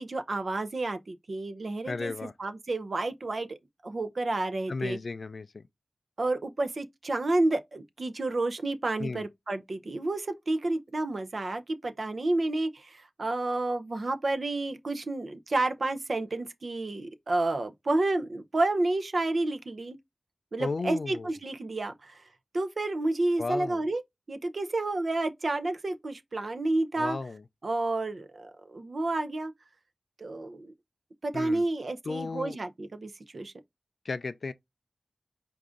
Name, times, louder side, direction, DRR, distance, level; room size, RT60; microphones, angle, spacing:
voice 1, 0.0-2.1 2.4-3.6 3.8-5.0 6.2-20.0 20.5-22.2 22.5-24.0 24.3-27.2 27.6-29.5 30.2-30.7 31.2-33.5, right 2 dB, 55° right, 0.6 m, -30 dB
voice 2, 1.8-2.3 4.7-5.7 9.0-9.3 20.6-21.3 23.4-23.8 26.9-27.4 31.3-31.6 32.0-32.6 34.0-34.5, left 3 dB, 60° left, 0.3 m, -34 dB
4.7 x 2.6 x 3.7 m
wide cardioid pair, 105°, 0 cm